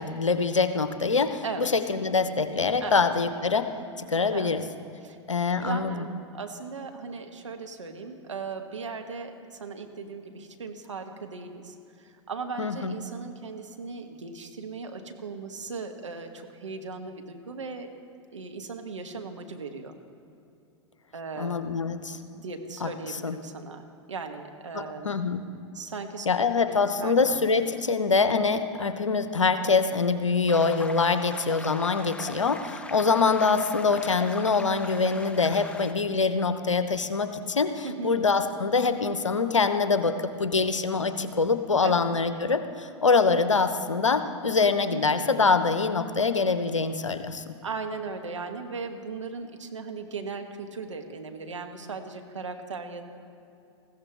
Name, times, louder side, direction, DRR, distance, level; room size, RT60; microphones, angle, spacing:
voice 1, 0.0-3.7 4.0-4.6 5.3-6.0 12.6-13.0 21.4-22.2 22.8-22.9 23.2-23.4 24.7-25.4 26.3-47.5, left 4 dB, 85° left, 10 dB, 0.8 m, -24 dB
voice 2, 5.6-17.9 18.3-19.9 21.1-21.6 22.4-25.1 25.7-27.4 37.8-38.2 41.8-42.1 44.9-45.3 47.6-53.0, right 4 dB, 80° right, 4 dB, 1.3 m, -38 dB
sound 1, 30.5-35.9, left 2 dB, 5° left, 0.6 m, -40 dB
20.0 x 15.5 x 3.4 m, 2.6 s
figure-of-eight pair, 95°, 15 cm